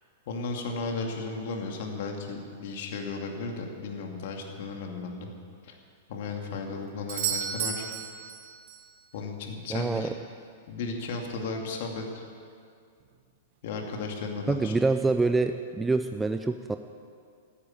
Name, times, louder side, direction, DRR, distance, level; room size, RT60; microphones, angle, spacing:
voice 1, 0.3-5.3 5.6-5.8 6.1-7.8 9.1-10.1 10.7-12.2 13.6-14.7, left 3 dB, 55° left, 2 dB, 2.5 m, -35 dB
Doorbell, 7.1-8.9 13.0-13.1, right 8 dB, 45° right, 1.5 m, -33 dB
voice 2, 9.7-10.1 14.5-16.8, right 3 dB, 5° right, 7 dB, 0.4 m, -26 dB
15.0 x 9.8 x 8.9 m, 2.2 s
supercardioid pair, 165°, 0 cm